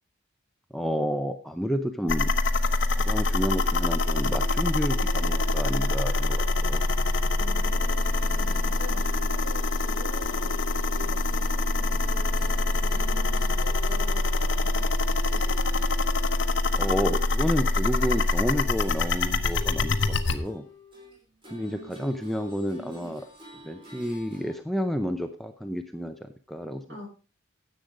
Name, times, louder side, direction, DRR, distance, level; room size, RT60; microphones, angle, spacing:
voice 1, 0.7-2.3 2.9-6.9 16.7-20.7 21.5-23.3 23.6-26.8, equal, ahead, 7 dB, 0.6 m, -30 dB
sound 1, 2.1-20.4, left 2 dB, 60° left, 0.9 m, -25 dB
voice 2, 7.4-15.9 26.9-27.1, left 1 dB, 60° right, -1 dB, 5.7 m, -46 dB
sound 2, 7.6-17.2 17.5-24.6, left 1 dB, 25° right, 3.8 m, -47 dB
10.5 x 7.9 x 4.9 m, 0.36 s
head